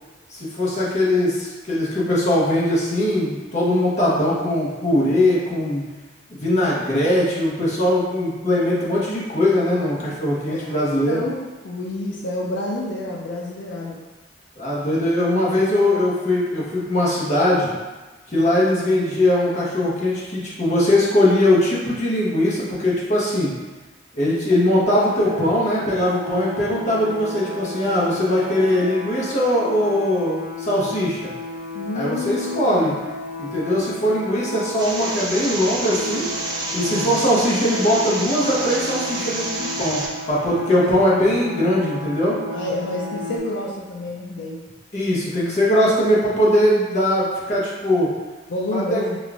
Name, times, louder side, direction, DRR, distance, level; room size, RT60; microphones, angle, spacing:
voice 1, 0.3-5.8 6.3-11.2 14.6-17.7 18.3-23.5 24.1-31.3 31.9-32.9 33.4-36.3 36.7-42.4 44.9-48.1 48.7-49.0, left 1 dB, 40° left, -6 dB, 0.9 m, -20 dB
voice 2, 11.1-14.0 31.7-33.0 36.9-37.3 40.8-41.0 42.5-44.6 48.5-49.2, left 2 dB, 85° left, -2 dB, 0.4 m, -29 dB
sound 1, 24.8-43.4, left 2 dB, 45° right, 0.9 m, -33 dB
sound 2, 34.8-40.1, right 2 dB, 25° right, 0.5 m, -29 dB
5.0 x 2.3 x 2.4 m, 1.2 s
head